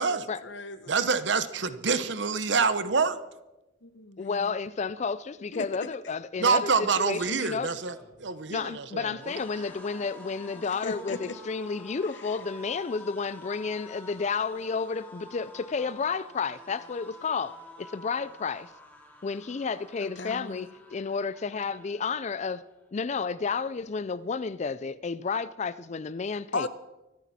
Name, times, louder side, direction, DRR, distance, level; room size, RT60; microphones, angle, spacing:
voice 1, 0.0-0.9 3.8-4.5 5.5-5.6 10.8-11.2 20.0-20.7 26.5-26.7, left 3 dB, 65° left, 1.0 m, -36 dB
voice 2, 0.9-3.2 6.4-9.4, right 5 dB, 65° right, 0.9 m, -27 dB
voice 3, 4.2-7.7 8.5-18.7 19.2-22.6 22.9-26.7, left 5 dB, 35° left, 0.4 m, -31 dB
sound 1, 7.7-22.9 23.2-23.4 23.7-24.5, left 1 dB, 10° left, 2.2 m, -50 dB
24.5 x 10.0 x 4.2 m
head